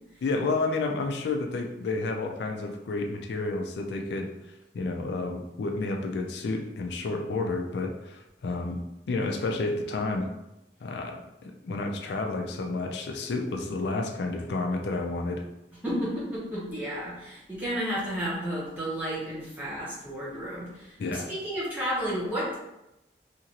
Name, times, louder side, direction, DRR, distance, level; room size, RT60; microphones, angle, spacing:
voice 1, 0.2-4.3 4.7-8.8 9.1-10.3 10.8-15.4 21.0-21.3, left 3 dB, 75° left, 3 dB, 0.4 m, -30 dB
voice 2, 15.8-22.5, equal, 10° right, -9 dB, 1.0 m, -32 dB
2.9 x 2.5 x 2.9 m, 0.90 s
head